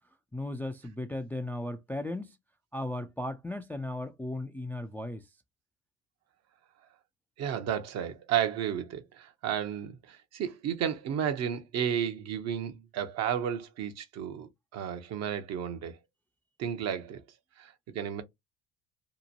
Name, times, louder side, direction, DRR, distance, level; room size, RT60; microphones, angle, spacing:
voice 1, 0.3-2.4 2.7-5.3, left 1 dB, 5° left, 0.3 m, -36 dB
voice 2, 7.4-16.0 16.6-17.2 17.6-18.2, right 9 dB, 55° right, 0.7 m, -32 dB
2.9 x 2.1 x 2.6 m
hypercardioid pair, 70°, 32 cm